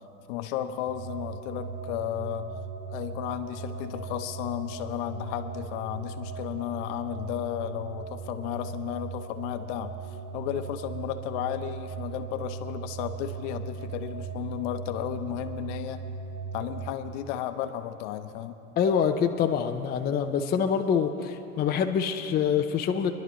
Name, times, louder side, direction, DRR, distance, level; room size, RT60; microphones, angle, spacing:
voice 1, 0.3-2.5 2.9-10.0 10.3-16.0 16.5-18.6, left 12 dB, 55° left, 9 dB, 1.0 m, -34 dB
sound 1, 0.9-16.9, right 5 dB, 55° right, 1.8 m, -38 dB
voice 2, 18.8-23.1, left 7 dB, 20° left, 5 dB, 0.6 m, -25 dB
24.0 x 11.5 x 3.1 m, 2.6 s
hypercardioid pair, 105°, 44 cm